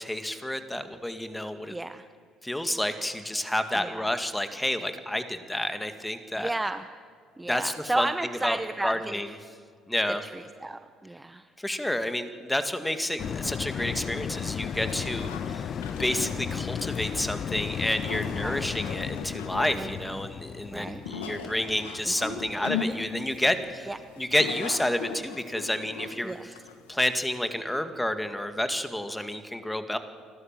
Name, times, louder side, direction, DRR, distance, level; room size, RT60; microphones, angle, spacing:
voice 1, 0.0-1.8 2.4-6.5 7.5-9.4 9.9-10.2 11.6-15.7 16.0-26.6 26.9-30.0, left 1 dB, 10° left, 9 dB, 2.1 m, -30 dB
voice 2, 1.7-2.0 3.8-4.0 6.4-6.8 7.4-8.9 10.6-11.4 18.4-18.7 19.7-19.9 20.7-21.0 22.2-22.4 23.9-24.0 26.2-26.4, right 2 dB, 15° right, 11 dB, 0.8 m, -32 dB
sound 1, 13.2-23.9 24.3-24.4, left 8 dB, 50° left, 0.6 m, -35 dB
sound 2, 14.9-27.0, left 6 dB, 85° left, 1.5 m, -38 dB
29.0 x 12.5 x 7.5 m, 2.1 s
hypercardioid pair, 60°, 0 cm